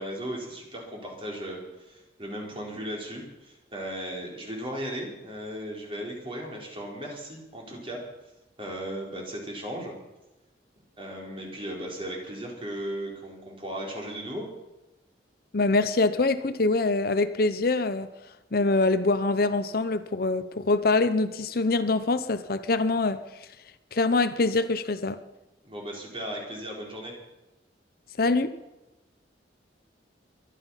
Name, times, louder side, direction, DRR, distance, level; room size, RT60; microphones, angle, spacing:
voice 1, 0.0-8.0 8.6-10.0 11.0-14.4 25.6-27.1, equal, 30° right, 4.3 m, -36 dB
voice 2, 15.5-18.1 18.5-23.2 23.9-25.2 28.2-28.5, left 3 dB, 55° left, 0.8 m, -24 dB
23.0 x 10.5 x 5.7 m
head